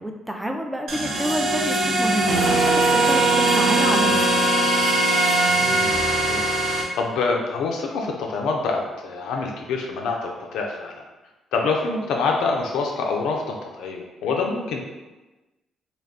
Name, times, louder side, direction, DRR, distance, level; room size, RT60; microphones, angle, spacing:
voice 1, 0.0-4.4, equal, 5° right, 3 dB, 0.4 m, -29 dB
sound 1, 0.9-6.8, right 2 dB, 70° right, 0.6 m, -20 dB
voice 2, 5.5-11.0 11.5-14.8, left 4 dB, 80° left, 1 dB, 0.3 m, -26 dB
2.3 x 2.2 x 3.4 m, 1.1 s
supercardioid pair, 60°, 0 cm